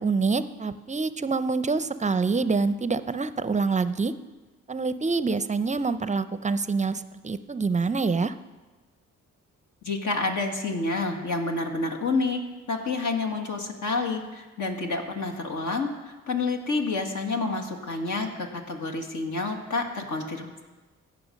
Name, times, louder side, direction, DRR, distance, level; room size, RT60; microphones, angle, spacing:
voice 1, 0.0-4.1 4.7-8.3, right 4 dB, 20° right, 13 dB, 0.6 m, -26 dB
voice 2, 9.8-12.4 12.7-20.6, left 3 dB, 60° left, 3 dB, 1.8 m, -29 dB
15.5 x 5.9 x 5.2 m, 1.2 s
supercardioid pair, 45°, 33 cm